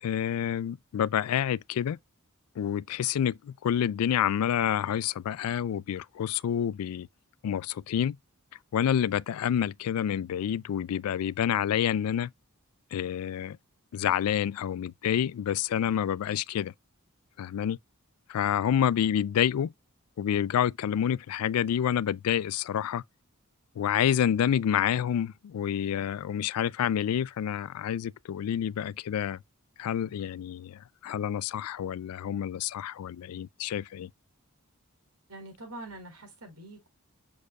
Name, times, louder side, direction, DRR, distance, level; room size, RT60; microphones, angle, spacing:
voice 1, 0.0-2.0 2.6-7.1 7.4-8.2 8.7-12.3 12.9-13.6 13.9-16.7 17.4-17.8 18.3-19.7 20.2-23.0 23.8-29.4 29.8-34.1, left 9 dB, 80° left, 0.3 m, -28 dB
voice 2, 35.3-36.9, right 1 dB, 85° right, 4.5 m, -44 dB
6.6 x 6.5 x 2.3 m
head